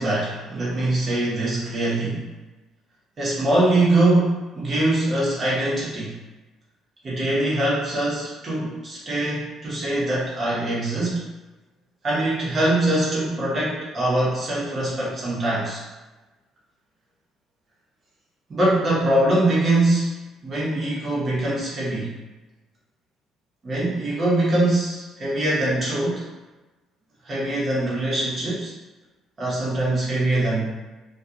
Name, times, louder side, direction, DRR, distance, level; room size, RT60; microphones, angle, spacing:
voice 1, 0.0-2.2 3.2-6.2 7.0-11.2 12.0-15.8 18.5-20.1 20.4-22.1 23.6-26.3 27.3-28.7 29.4-30.7, right 1 dB, 30° right, -6 dB, 0.8 m, -23 dB
2.3 x 2.2 x 2.7 m, 1.1 s
cardioid pair, 150°, 0 cm